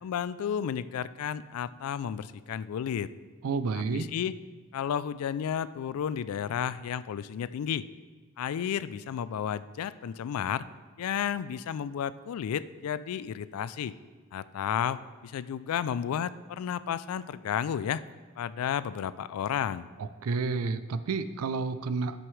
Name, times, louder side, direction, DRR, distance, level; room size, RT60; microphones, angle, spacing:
voice 1, 0.0-3.1 3.7-4.3 4.7-7.9 8.4-10.6 11.0-13.9 14.3-18.0 18.4-19.9, left 8 dB, 75° left, 16 dB, 0.3 m, -32 dB
voice 2, 3.4-4.1 20.0-22.2, right 4 dB, 75° right, 13 dB, 0.4 m, -30 dB
9.5 x 7.8 x 3.2 m, 1.4 s
head